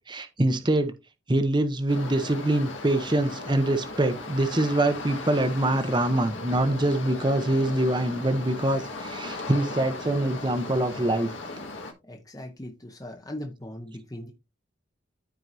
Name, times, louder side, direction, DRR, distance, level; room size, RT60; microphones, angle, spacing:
voice 1, 0.1-0.9 1.3-11.3, right 1 dB, 25° right, 0.8 m, -24 dB
sound 1, 1.9-11.9, left 2 dB, 80° left, 1.8 m, -37 dB
voice 2, 12.0-14.3, left 1 dB, 20° left, 1.0 m, -39 dB
14.0 x 4.7 x 2.7 m
head